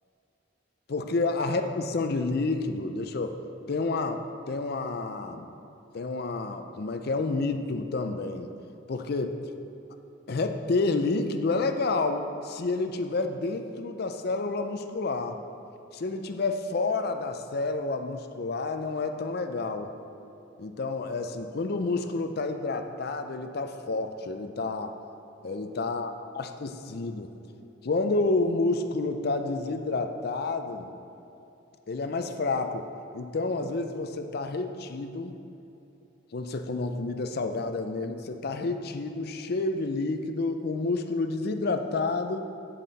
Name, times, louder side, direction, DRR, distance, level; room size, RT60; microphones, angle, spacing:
voice 1, 0.9-3.4 3.7-5.5 5.9-8.5 8.9-9.4 10.3-15.4 15.9-19.9 20.6-24.9 25.4-27.3 27.8-30.9 31.9-32.9 33.1-35.4 36.3-42.4, left 3 dB, 50° left, 7 dB, 0.5 m, -29 dB
7.6 x 7.6 x 4.0 m, 2.9 s
head